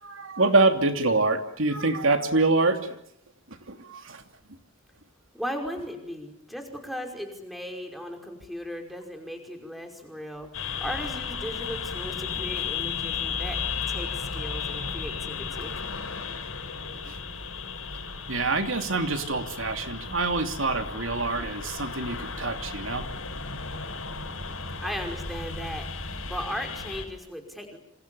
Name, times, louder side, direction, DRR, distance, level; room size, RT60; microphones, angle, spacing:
voice 1, 0.0-2.9 3.7-4.2 16.9-17.2 18.3-23.1, right 3 dB, 65° right, 6 dB, 3.0 m, -25 dB
voice 2, 5.3-13.6 13.9-15.7 24.8-25.9 26.3-27.8, equal, ahead, 4 dB, 5.3 m, -37 dB
sound 1, 10.5-27.1, left 5 dB, 80° left, 5.7 m, -34 dB
28.0 x 27.5 x 7.1 m, 0.73 s
head